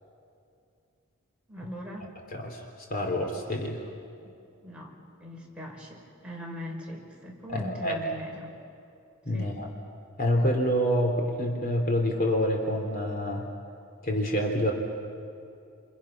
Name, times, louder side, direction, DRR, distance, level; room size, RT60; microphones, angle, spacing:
voice 1, 1.5-2.1 4.2-4.3 4.6-8.5 9.3-9.6, equal, 5° right, -3 dB, 5.3 m, -41 dB
voice 2, 2.3-2.6 2.9-3.8 7.5-8.0 9.2-9.7 10.2-13.4 14.0-14.7, equal, 45° left, 1 dB, 2.9 m, -27 dB
29.0 x 28.5 x 5.8 m, 2.6 s
head